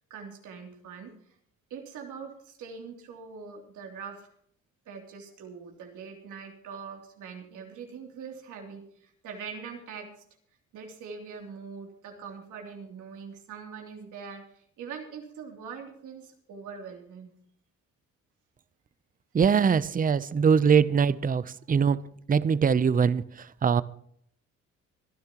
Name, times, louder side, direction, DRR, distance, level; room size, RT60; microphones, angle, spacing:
voice 1, 0.1-1.3 1.7-4.3 4.8-10.2 10.7-17.3, right 6 dB, 85° right, 2 dB, 3.1 m, -43 dB
voice 2, 19.3-23.8, right 6 dB, 30° right, 17 dB, 0.6 m, -23 dB
25.5 x 10.5 x 3.0 m, 0.66 s
cardioid pair, 90°, 30 cm